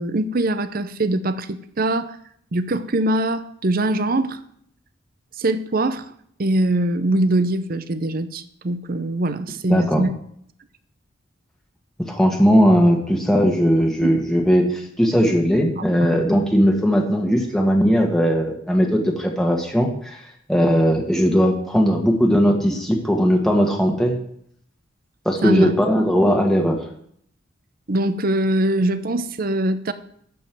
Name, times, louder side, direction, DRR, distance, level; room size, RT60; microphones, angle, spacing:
voice 1, 0.0-2.2 2.5-4.4 5.4-6.1 6.4-10.1 14.0-14.2 15.8-16.1 25.4-25.7 27.9-29.9, right 1 dB, 45° right, 12 dB, 0.7 m, -22 dB
voice 2, 9.7-10.0 12.1-20.2 20.5-24.2 25.2-26.8, equal, ahead, 1 dB, 1.5 m, -18 dB
12.5 x 5.3 x 7.5 m, 0.66 s
head